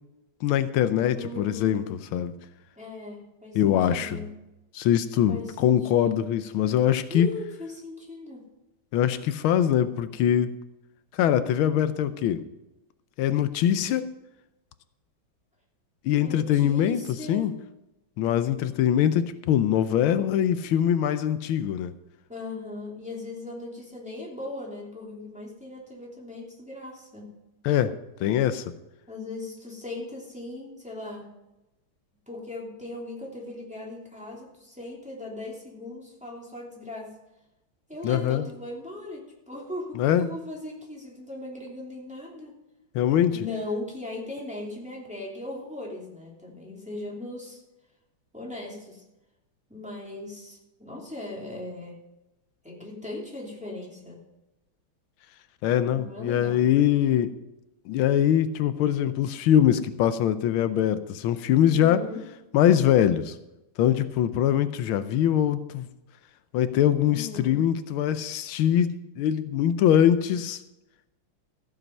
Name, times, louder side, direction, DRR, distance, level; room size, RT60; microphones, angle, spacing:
voice 1, 0.4-2.3 3.5-4.2 4.7-7.3 8.9-10.5 11.1-12.4 13.2-14.1 16.0-17.5 18.2-21.9 27.6-27.9 28.2-28.6 38.0-38.5 40.0-40.3 42.9-43.4 55.6-57.3 57.9-62.0 62.5-63.4 63.8-65.9 66.5-70.6, left 10 dB, 85° left, 12 dB, 1.5 m, -23 dB
voice 2, 1.1-1.9 2.8-4.3 5.3-6.2 7.1-8.4 16.2-17.5 22.3-27.3 29.1-31.3 32.3-37.1 37.9-42.6 43.3-47.6 48.3-49.0 49.7-52.0 52.6-54.2 55.9-56.7 61.7-62.2 67.1-67.6, left 2 dB, 5° right, -3 dB, 2.8 m, -38 dB
14.5 x 7.8 x 5.4 m, 0.95 s
omnidirectional pair, 2.2 m